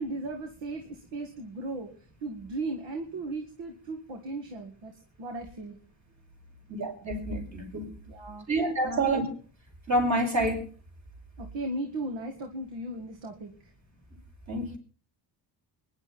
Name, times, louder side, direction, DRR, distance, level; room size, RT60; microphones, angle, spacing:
voice 1, 0.0-1.9 2.2-5.8 8.1-8.5 8.8-9.1 11.4-13.5, right 2 dB, 85° right, 4 dB, 2.2 m, -36 dB
voice 2, 6.7-7.9 8.5-9.2 9.9-10.6 14.5-14.8, right 1 dB, 40° right, 2 dB, 5.8 m, -27 dB
23.5 x 11.0 x 4.3 m, 0.41 s
cardioid pair, 90°, 43 cm